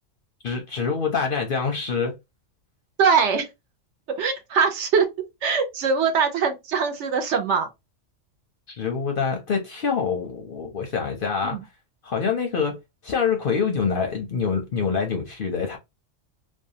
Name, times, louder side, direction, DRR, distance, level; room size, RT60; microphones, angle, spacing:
voice 1, 0.4-2.1 8.8-11.6 12.0-12.7 13.0-15.8, left 5 dB, 55° left, 0.6 m, -25 dB
voice 2, 3.0-3.5 4.2-5.1 5.4-7.7 11.4-11.6, right 6 dB, 70° right, 0.9 m, -22 dB
2.6 x 2.1 x 2.6 m
omnidirectional pair, 1.3 m